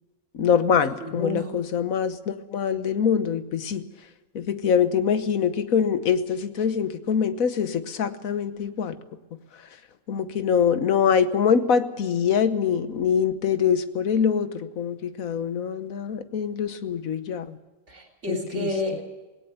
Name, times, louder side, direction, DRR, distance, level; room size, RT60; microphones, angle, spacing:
voice 1, 0.3-3.8 4.3-8.9 10.1-17.6 18.3-18.7, left 7 dB, 80° left, 11 dB, 1.5 m, -24 dB
voice 2, 1.0-1.5 17.9-19.0, left 1 dB, 55° right, 1 dB, 3.9 m, -30 dB
18.5 x 17.5 x 8.0 m, 1.1 s
omnidirectional pair, 1.4 m